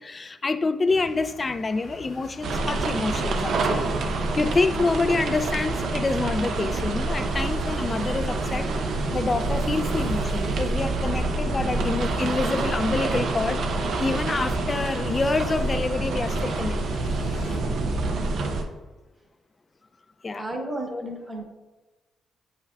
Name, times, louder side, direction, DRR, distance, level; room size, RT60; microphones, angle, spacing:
voice 1, 0.0-3.9 4.2-8.7 9.1-13.7 14.0-17.0 20.2-20.5 20.9-21.0, left 3 dB, 30° left, 0.4 m, -27 dB
sound 1, 0.9-17.6, left 2 dB, 90° left, 2.0 m, -42 dB
sound 2, 2.4-18.6, right 3 dB, 70° right, 0.6 m, -27 dB
sound 3, 10.7-18.3, left 2 dB, 65° left, 0.9 m, -40 dB
voice 2, 20.4-21.4, right 1 dB, 20° right, 1.1 m, -34 dB
8.3 x 5.5 x 2.3 m
cardioid pair, 95°, 0 cm